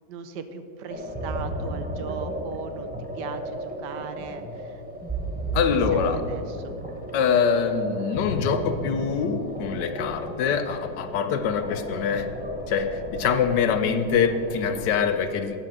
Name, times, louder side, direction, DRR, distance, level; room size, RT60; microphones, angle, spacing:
voice 1, 0.1-4.8 5.1-5.2 5.7-6.7, right 6 dB, 75° right, 9 dB, 1.3 m, -38 dB
sound 1, 0.9-14.9, right 1 dB, 10° right, 0.6 m, -34 dB
voice 2, 5.5-6.2 7.1-12.3 12.7-15.6, left 7 dB, 75° left, 8 dB, 1.3 m, -24 dB
12.5 x 5.9 x 6.0 m, 2.5 s
omnidirectional pair, 2.0 m